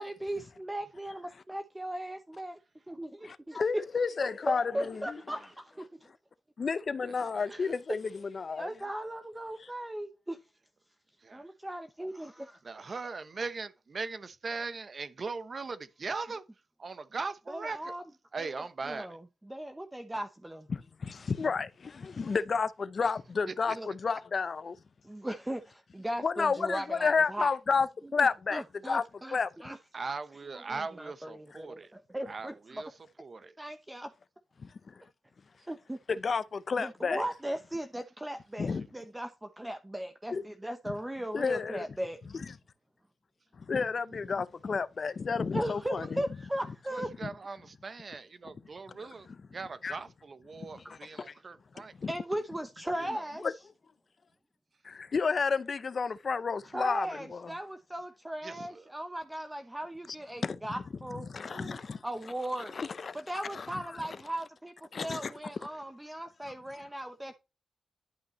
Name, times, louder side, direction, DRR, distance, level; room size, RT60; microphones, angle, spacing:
voice 1, 0.0-2.6 2.9-3.8 4.5-6.1 7.5-7.8 8.6-10.4 11.3-12.6 17.5-18.1 18.4-20.7 23.7-23.9 25.0-27.6 28.2-29.8 30.5-32.8 33.6-34.1 35.7-36.0 36.8-42.3 45.5-47.1 50.8-51.0 52.1-53.5 56.7-61.3 62.0-62.7 63.1-64.7 65.0-67.4, right 1 dB, 10° right, 0.8 m, -38 dB
voice 2, 3.2-5.2 6.6-8.7 20.7-24.8 26.2-29.0 29.3-29.5 34.6-34.9 36.1-37.2 38.6-38.9 40.3-40.4 41.3-41.8 42.3-42.5 43.6-46.2 47.2-47.3 48.4-48.5 48.9-49.5 49.8-50.0 50.6-51.3 52.0-52.1 53.4-53.5 54.8-57.5 60.4-60.6 61.1-62.0 62.8-63.2 63.5-63.7 64.9-65.3, left 5 dB, 50° left, 0.6 m, -31 dB
voice 3, 12.6-16.4 16.8-17.8 18.3-19.1 23.5-23.8 29.9-31.9 32.3-32.9 33.2-33.5 46.0-46.1 47.2-49.3 49.5-51.9 58.4-58.6 61.5-61.8, right 4 dB, 45° right, 0.9 m, -39 dB
11.0 x 5.4 x 3.1 m
cardioid pair, 95°, 0 cm